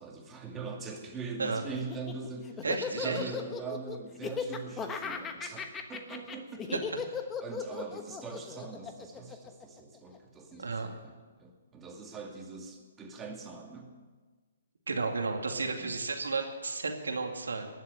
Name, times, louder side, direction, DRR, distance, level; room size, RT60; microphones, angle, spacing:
voice 1, 0.0-6.7 7.4-13.9 15.5-15.9, right 4 dB, 15° right, 1 dB, 2.3 m, -42 dB
Laughter, 1.8-10.2, left 6 dB, 15° left, 1.1 m, -37 dB
voice 2, 2.6-3.3 6.7-6.8 10.6-10.9 14.9-17.7, right 4 dB, 90° right, 3 dB, 2.3 m, -32 dB
19.0 x 7.5 x 9.0 m, 1.4 s
hypercardioid pair, 140°, 0 cm